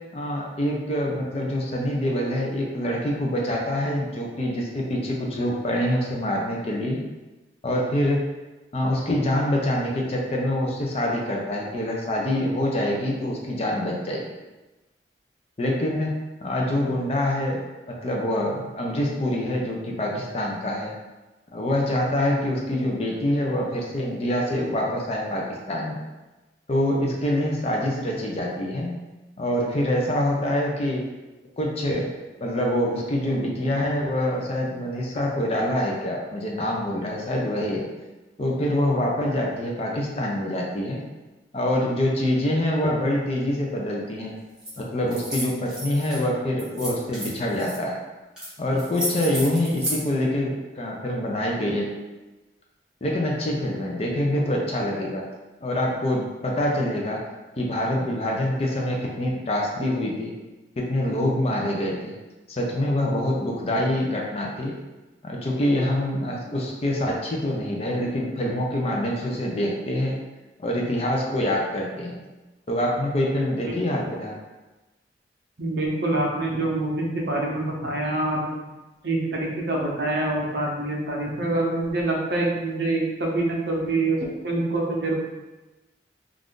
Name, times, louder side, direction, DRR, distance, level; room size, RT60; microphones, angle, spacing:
voice 1, 0.1-7.0 7.6-8.2 8.7-14.2 15.6-16.1 16.4-20.9 21.5-26.0 26.7-28.9 29.4-31.0 31.6-32.1 32.4-37.8 38.4-41.0 41.5-44.3 44.8-48.0 48.6-51.9 53.0-55.2 55.6-57.2 57.6-60.3 60.8-62.1 62.5-64.7 65.2-70.2 70.6-72.2 72.7-74.4, left 1 dB, 35° left, -1 dB, 0.4 m, -25 dB
sound 1, 44.6-44.8 45.1-46.2 46.6-47.8 48.4-48.5 48.8-50.0, right 1 dB, 5° right, 0.8 m, -31 dB
voice 2, 75.6-78.5 79.0-85.1, right 2 dB, 60° right, -2 dB, 0.6 m, -25 dB
2.5 x 2.4 x 3.5 m, 1.1 s
head